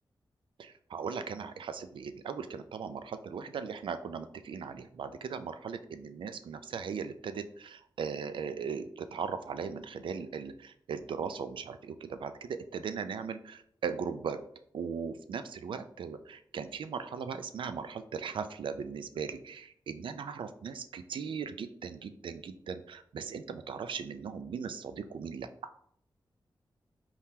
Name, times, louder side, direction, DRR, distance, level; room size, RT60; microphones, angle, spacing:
voice 1, 0.6-14.4 14.7-25.5, right 6 dB, 80° right, 10 dB, 0.3 m, -38 dB
4.4 x 2.8 x 3.6 m, 0.66 s
wide cardioid pair, 125°, 8 cm